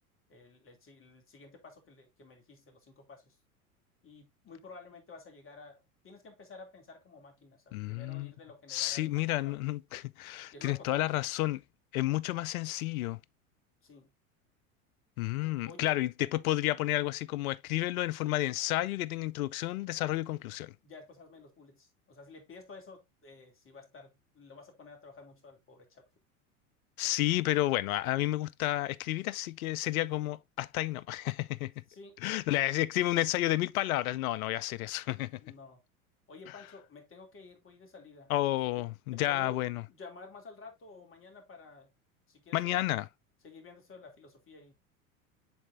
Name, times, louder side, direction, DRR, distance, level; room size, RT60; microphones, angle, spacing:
voice 1, 0.3-3.4 4.0-9.6 10.5-11.2 13.8-14.1 15.4-15.9 20.8-26.1 31.9-32.2 35.4-35.8 36.3-38.5 39.1-39.6 39.9-41.9 42.3-42.8 43.4-44.7, left 3 dB, 30° left, 2.7 m, -52 dB
voice 2, 7.7-8.3 8.7-11.6 11.9-13.2 15.2-20.7 27.0-31.7 32.2-35.4 38.3-39.8 42.5-43.1, left 16 dB, 70° left, 0.6 m, -31 dB
10.5 x 4.1 x 2.6 m
hypercardioid pair, 85°, 44 cm